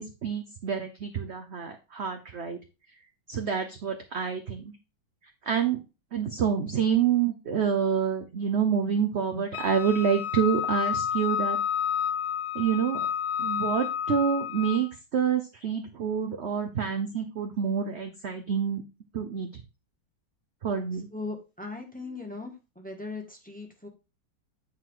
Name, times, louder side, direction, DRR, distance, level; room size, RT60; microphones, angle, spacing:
voice 1, 0.0-2.6 3.3-4.7 5.4-5.8 6.1-11.6 12.5-13.1 13.4-18.8 19.1-19.6 20.6-21.1, right 7 dB, 55° right, 5 dB, 0.7 m, -27 dB
Wind instrument woodwind instrument, 9.5-14.9, left 9 dB, 60° left, 1.3 m, -30 dB
voice 2, 21.1-23.9, left 3 dB, 5° left, 2 dB, 1.4 m, -39 dB
9.2 x 4.7 x 3.8 m, 0.29 s
omnidirectional pair, 2.1 m